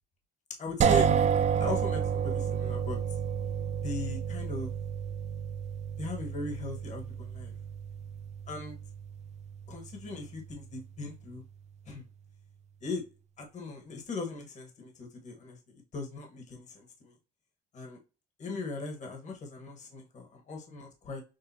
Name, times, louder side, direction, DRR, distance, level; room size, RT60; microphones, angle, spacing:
voice 1, 0.6-1.1 1.6-3.0 3.8-4.7 6.0-7.5 8.5-8.8 9.7-11.4 11.8-12.0 12.8-13.0 13.4-17.1 17.7-18.0 18.4-21.2, left 2 dB, 45° left, 3 dB, 1.4 m, -38 dB
sound 1, 0.8-10.6, right 7 dB, 40° right, 0.5 m, -31 dB
6.6 x 2.5 x 2.7 m, 0.32 s
cardioid pair, 110°, 17 cm